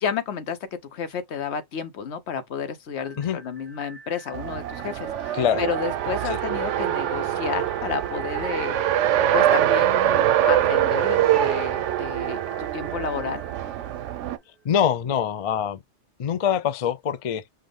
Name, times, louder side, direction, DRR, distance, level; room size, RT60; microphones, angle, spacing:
voice 1, 0.0-0.6 0.9-8.8 9.3-13.4, left 6 dB, 75° left, 1.0 m, -31 dB
sound 1, 2.9-14.8, right 4 dB, 35° right, 1.4 m, -44 dB
Race car auto racing, 4.3-14.4, right 11 dB, 90° right, 0.9 m, -24 dB
voice 2, 14.6-15.8 16.2-17.4, left 9 dB, 55° left, 0.4 m, -24 dB
5.8 x 2.4 x 3.4 m
omnidirectional pair, 1.2 m